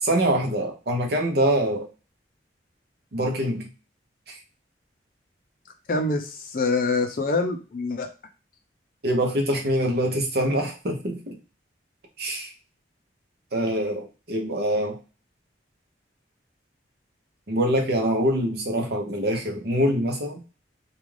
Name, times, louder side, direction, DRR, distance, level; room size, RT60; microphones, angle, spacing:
voice 1, 0.0-1.9 3.1-3.7 4.3-4.4 9.0-11.4 12.2-12.5 13.5-15.0 17.5-20.4, right 1 dB, 60° right, 3 dB, 0.7 m, -24 dB
voice 2, 5.9-8.1, left 3 dB, 50° left, 5 dB, 0.5 m, -25 dB
2.4 x 2.3 x 3.2 m, 0.33 s
head